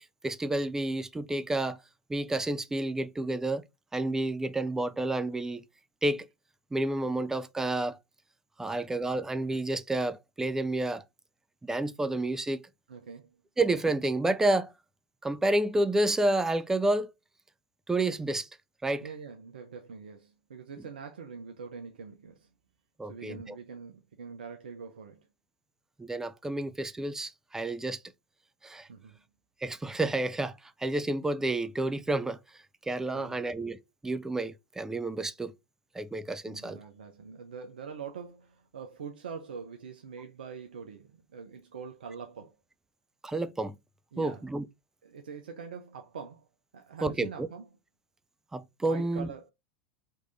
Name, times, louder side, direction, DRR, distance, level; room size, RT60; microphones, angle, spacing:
voice 1, 0.0-1.8 2.1-3.7 3.9-5.6 6.0-6.3 6.7-8.0 8.6-11.0 11.6-12.6 13.6-14.7 15.2-17.1 17.9-18.5 18.8-19.0 23.0-23.4 26.0-28.0 28.6-28.9 29.6-32.4 32.9-35.5 35.9-36.8 43.2-43.8 44.2-44.6 47.0-47.5 48.5-49.3, right 2 dB, 10° right, 0.5 m, -30 dB
voice 2, 12.9-13.4 19.0-22.5 23.1-25.3 28.9-29.2 33.1-33.5 36.4-42.6 44.1-44.5 45.0-46.5 46.7-47.8 48.8-49.5, right 6 dB, 75° right, 0.7 m, -44 dB
3.5 x 3.2 x 3.9 m
hypercardioid pair, 90°, 5 cm